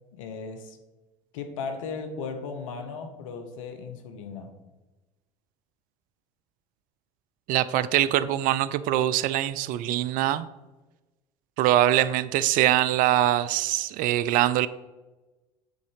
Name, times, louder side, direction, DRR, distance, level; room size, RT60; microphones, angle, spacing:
voice 1, 0.1-0.8 1.3-4.5, left 5 dB, 80° left, 7 dB, 1.1 m, -36 dB
voice 2, 7.5-10.5 11.6-14.7, right 13 dB, 55° right, 16 dB, 0.5 m, -23 dB
9.2 x 4.0 x 4.9 m, 1.1 s
hypercardioid pair, 80°, 17 cm